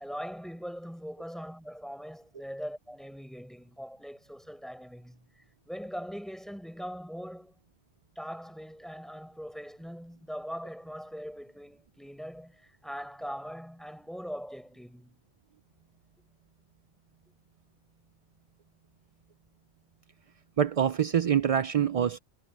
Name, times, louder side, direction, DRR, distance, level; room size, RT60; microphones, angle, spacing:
voice 1, 0.0-7.5 8.2-15.1, equal, ahead, 6.1 m, -41 dB
voice 2, 20.6-22.2, right 8 dB, 50° right, 0.4 m, -25 dB
omnidirectional pair, 1.2 m